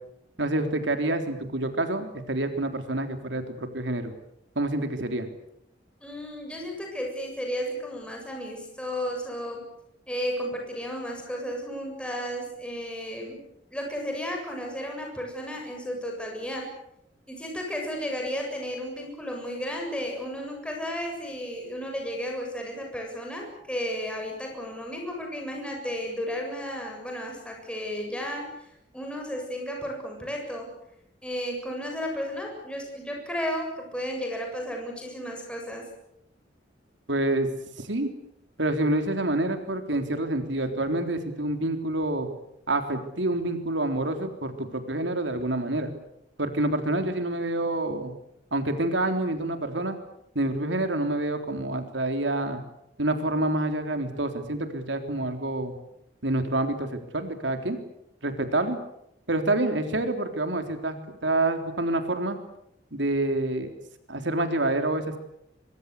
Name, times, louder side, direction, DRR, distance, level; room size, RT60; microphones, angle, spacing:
voice 1, 0.4-4.1 4.6-5.3 37.1-37.5 37.8-38.1 38.6-42.3 42.7-45.9 46.4-48.1 48.5-50.0 50.4-52.6 53.0-55.7 56.2-57.8 58.2-58.8 59.3-61.0 61.2-62.4 62.9-63.7 64.1-65.2, right 2 dB, 75° right, 7 dB, 3.7 m, -27 dB
voice 2, 6.0-9.6 10.1-13.4 13.7-16.7 17.3-28.7 28.9-30.7 31.2-35.9, equal, 5° left, 1 dB, 7.5 m, -33 dB
24.5 x 24.5 x 8.4 m, 0.77 s
head